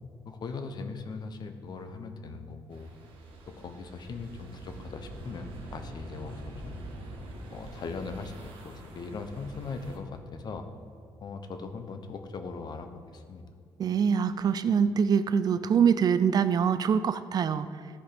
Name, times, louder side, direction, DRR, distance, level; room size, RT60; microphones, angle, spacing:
voice 1, 0.2-2.9 3.5-6.8 7.5-10.7 11.2-13.4, left 4 dB, 50° left, 7 dB, 0.9 m, -40 dB
sound 1, 2.7-10.0, right 1 dB, 80° right, 1.6 m, -44 dB
voice 2, 13.8-17.7, right 7 dB, 45° right, 13 dB, 0.4 m, -24 dB
13.5 x 5.1 x 4.2 m, 2.4 s
cardioid pair, 100°, 9 cm